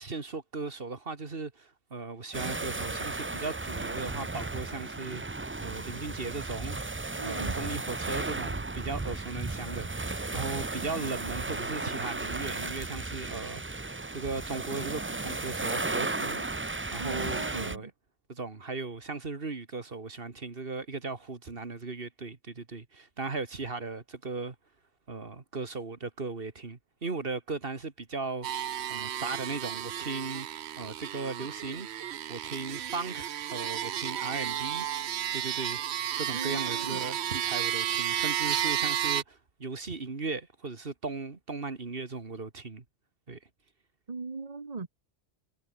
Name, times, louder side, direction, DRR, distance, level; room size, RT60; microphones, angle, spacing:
voice 1, 0.0-5.2 5.6-6.8 7.2-13.8 14.1-17.9 18.3-24.6 25.1-28.5 28.9-30.5 30.8-34.9 35.3-35.8 36.2-42.8 43.3-43.4, right 4 dB, 55° right, 2.1 m, -37 dB
sound 1, 2.3-17.8, right 3 dB, 20° right, 0.4 m, -35 dB
voice 2, 7.2-7.6 17.0-17.9 36.3-37.0 44.1-44.9, right 4 dB, 35° right, 1.4 m, -39 dB
sound 2, 28.4-39.2, right 11 dB, 75° right, 1.0 m, -32 dB
omnidirectional pair, 1.1 m